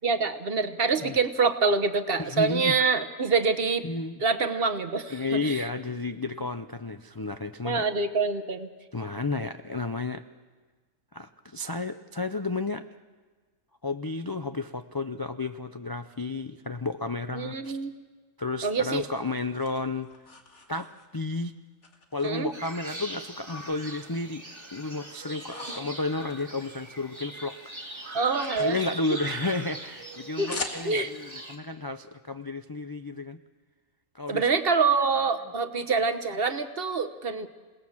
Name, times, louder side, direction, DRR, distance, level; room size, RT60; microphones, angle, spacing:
voice 1, 0.0-3.8 4.2-5.1 5.4-5.7 7.6-8.7 17.3-17.9 18.6-19.0 22.2-22.5 28.1-28.8 29.1-29.2 30.4-30.5 30.8-31.1 34.3-37.5, right 4 dB, 45° right, 8 dB, 1.2 m, -26 dB
voice 2, 2.2-2.8 3.8-4.2 5.1-7.8 8.9-10.2 11.1-12.8 13.8-17.8 18.4-20.1 20.7-21.5 22.1-24.4 24.7-28.1 28.6-33.4 34.1-34.5, left 3 dB, 30° left, 8 dB, 0.4 m, -32 dB
sound 1, 18.5-21.3 21.8-22.9 23.2-24.3 24.6-27.2 27.5-31.3, left 3 dB, 60° left, 2.3 m, -43 dB
sound 2, 22.5-31.6, right 1 dB, 20° right, 2.0 m, -41 dB
28.0 x 19.0 x 7.3 m, 1.4 s
omnidirectional pair, 1.4 m